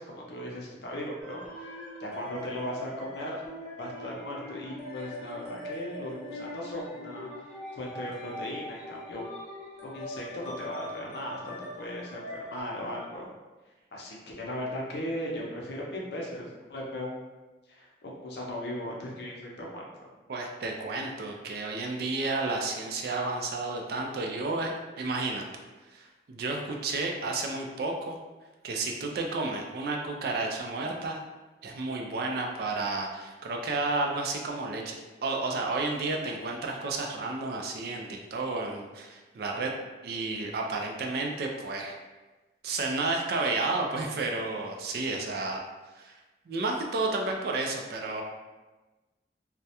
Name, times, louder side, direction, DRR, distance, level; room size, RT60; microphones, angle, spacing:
voice 1, 0.0-1.7 2.0-3.4 3.8-7.3 7.7-9.3 9.8-13.3 13.9-17.1 17.7-20.1, left 1 dB, 65° left, -3 dB, 0.5 m, -37 dB
sound 1, 1.2-12.6, left 1 dB, 5° right, 0.5 m, -42 dB
voice 2, 20.3-25.5 25.9-28.2 28.6-31.2 31.6-35.0 35.2-39.7 40.0-42.0 42.6-45.6 45.9-46.2 46.5-48.2, right 3 dB, 55° right, 1 dB, 0.3 m, -31 dB
2.3 x 2.1 x 2.8 m, 1.2 s
head